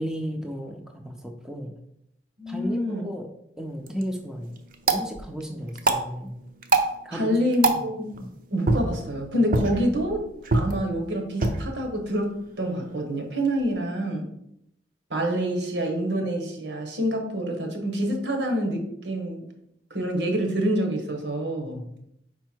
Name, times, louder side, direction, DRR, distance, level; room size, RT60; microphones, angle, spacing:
voice 1, 0.0-1.7 2.5-3.3 3.6-4.6 4.9-6.4 7.0-7.3 7.6-7.9 8.2-8.3 21.6-21.9, equal, 5° right, 2 dB, 0.5 m, -34 dB
voice 2, 2.4-3.0 7.1-8.0 8.5-10.2 10.5-14.3 15.1-19.5 19.9-21.8, equal, 75° right, 3 dB, 1.3 m, -27 dB
sound 1, 3.7-13.8, right 2 dB, 50° right, 0.6 m, -29 dB
5.2 x 4.5 x 4.5 m, 0.77 s
head